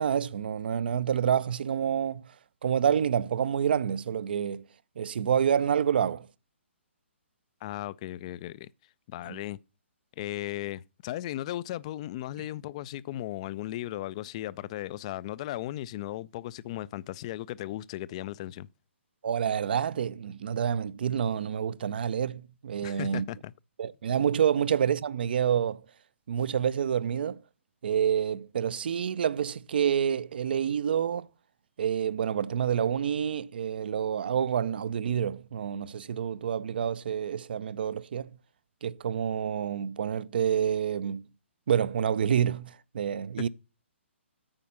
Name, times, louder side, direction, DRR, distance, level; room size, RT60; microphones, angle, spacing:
voice 1, 0.0-2.3 2.6-4.6 5.0-6.3 9.3-9.4 19.2-23.3 23.8-25.8 26.3-27.4 27.8-31.3 31.8-38.4 38.8-41.2 41.7-43.5, right 8 dB, 50° right, 0.4 m, -28 dB
voice 2, 7.6-8.7 9.1-9.6 10.2-18.7 22.8-23.5 43.4-43.5, left 14 dB, 30° left, 0.3 m, -36 dB
8.8 x 5.0 x 5.5 m
figure-of-eight pair, 130°, 7 cm